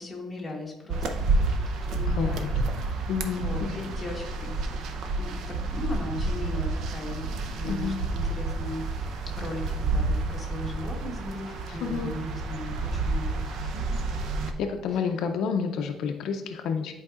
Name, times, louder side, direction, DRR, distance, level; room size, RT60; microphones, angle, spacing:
voice 1, 0.0-4.8 5.2-14.0, left 1 dB, 10° left, -2 dB, 1.1 m, -38 dB
sound 1, 0.9-14.5, right 3 dB, 50° right, 0.6 m, -29 dB
voice 2, 2.1-2.5 3.1-3.8 7.6-7.9 11.7-12.2 14.6-17.0, left 6 dB, 60° left, 5 dB, 0.5 m, -30 dB
10.5 x 4.6 x 2.4 m, 1.0 s
cardioid pair, 175°, 0 cm